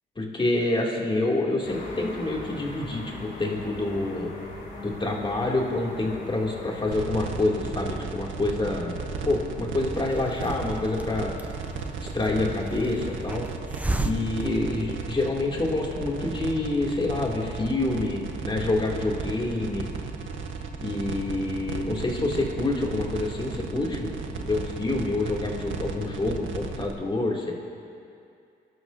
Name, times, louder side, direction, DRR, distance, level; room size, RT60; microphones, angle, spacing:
voice 1, 0.2-4.3 4.8-11.3 12.0-13.4 14.0-19.9 20.8-27.5, left 2 dB, 25° left, -2 dB, 2.6 m, -27 dB
sound 1, 1.6-6.9, left 2 dB, 65° left, 3.6 m, -39 dB
sound 2, 6.9-26.9, right 5 dB, 80° right, 1.1 m, -35 dB
Hiss, 9.9-15.4, right 2 dB, 5° right, 0.7 m, -35 dB
24.5 x 12.5 x 2.7 m, 2.5 s
cardioid pair, 90°, 20 cm